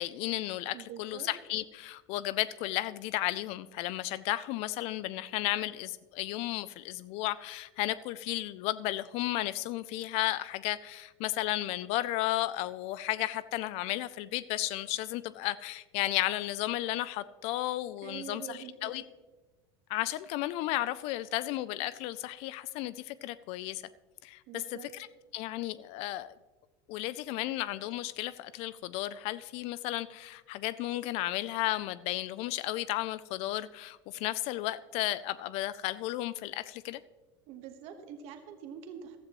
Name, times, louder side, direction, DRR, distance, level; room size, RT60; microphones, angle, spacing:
voice 1, 0.0-19.0 19.9-23.8 24.2-24.6 24.9-25.1 25.3-26.3 26.9-37.0, left 16 dB, 55° left, 17 dB, 0.4 m, -33 dB
voice 2, 0.7-1.3 18.0-18.9 24.5-24.9 37.5-39.2, right 8 dB, 60° right, 6 dB, 1.3 m, -45 dB
15.0 x 12.5 x 3.0 m, 1.3 s
supercardioid pair, 135°, 12 cm